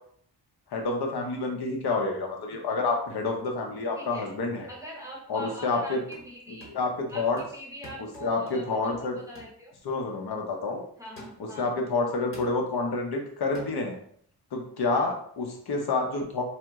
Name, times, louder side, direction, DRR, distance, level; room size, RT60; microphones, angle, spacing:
voice 1, 0.7-4.7 5.3-6.0 6.7-7.4 8.0-9.2 9.8-10.8 11.4-14.0 14.5-16.4, left 3 dB, 70° left, 2 dB, 0.7 m, -28 dB
voice 2, 3.9-4.3 4.7-6.7 7.1-9.7 11.0-11.7 14.9-15.1, left 1 dB, 10° right, -3 dB, 0.6 m, -42 dB
sound 1, 5.9-6.3 6.6-7.0 7.4-8.8 9.3-9.6 10.1-10.2 11.2-11.6 12.3-12.6 13.5-13.7, equal, 30° left, 1.0 m, -48 dB
2.9 x 2.1 x 3.4 m, 0.62 s
wide cardioid pair, 155°, 40 cm